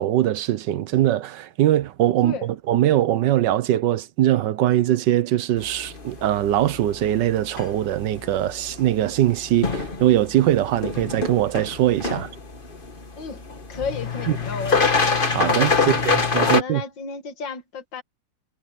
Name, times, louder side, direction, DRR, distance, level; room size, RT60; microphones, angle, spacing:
voice 1, 0.0-12.3 14.3-14.4 15.3-16.8, right 12 dB, 75° right, 1.4 m, -21 dB
voice 2, 2.2-2.5 13.2-13.4 13.7-15.0 15.8-15.9 16.4-18.0, left 5 dB, 75° left, 2.3 m, -33 dB
sound 1, 5.6-16.6, left 4 dB, 30° left, 1.6 m, -26 dB
omnidirectional pair, 2.0 m